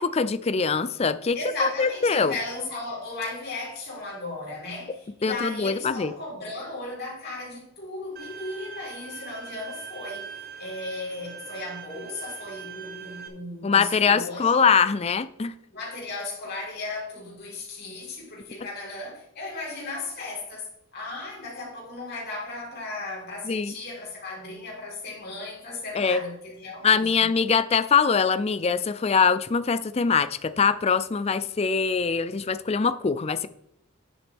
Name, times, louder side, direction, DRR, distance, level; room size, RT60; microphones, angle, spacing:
voice 1, 0.0-2.3 5.2-6.1 13.6-15.5 23.4-23.8 25.9-26.2 26.8-33.5, left 5 dB, 30° left, 14 dB, 0.4 m, -23 dB
voice 2, 1.3-14.7 15.7-27.3, left 2 dB, 50° left, -4 dB, 4.0 m, -36 dB
Bowed string instrument, 8.2-13.3, right 7 dB, 45° right, 1.2 m, -41 dB
10.5 x 7.0 x 3.5 m, 0.78 s
head